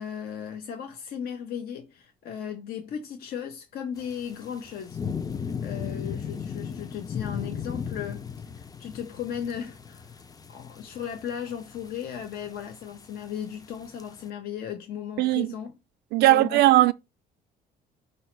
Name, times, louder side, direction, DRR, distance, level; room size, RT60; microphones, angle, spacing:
voice 1, 0.0-5.0 5.4-8.2 8.5-10.2 10.5-15.7 16.2-16.6, left 8 dB, 65° left, 0.7 m, -36 dB
sound 1, 4.0-14.3, left 7 dB, 20° left, 0.5 m, -37 dB
voice 2, 15.2-15.5 16.1-16.9, right 16 dB, 75° right, 0.4 m, -18 dB
5.4 x 2.0 x 4.4 m
cardioid pair, 110°, 17 cm